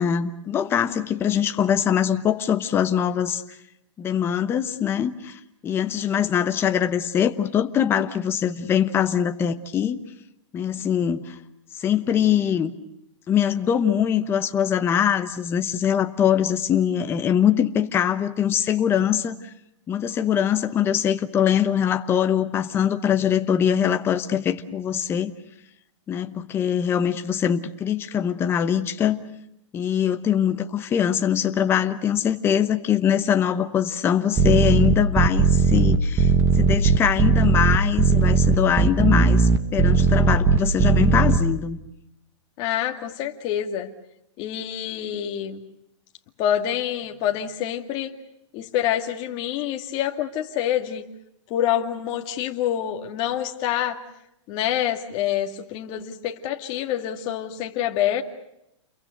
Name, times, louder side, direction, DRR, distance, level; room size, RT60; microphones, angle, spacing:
voice 1, 0.0-3.4 4.0-10.0 10.5-11.4 11.8-12.7 13.3-19.5 19.9-25.3 26.1-29.2 29.7-36.3 36.6-41.8, left 9 dB, 15° left, 8 dB, 0.9 m, -22 dB
sound 1, 34.4-41.4, right 5 dB, 15° right, 1.3 m, -18 dB
voice 2, 42.6-43.9 44.4-45.6 46.4-48.1 48.5-51.0 51.5-54.0 54.5-58.2, left 11 dB, 30° left, 4 dB, 2.2 m, -26 dB
29.5 x 23.0 x 6.6 m, 0.82 s
hypercardioid pair, 155°, 16 cm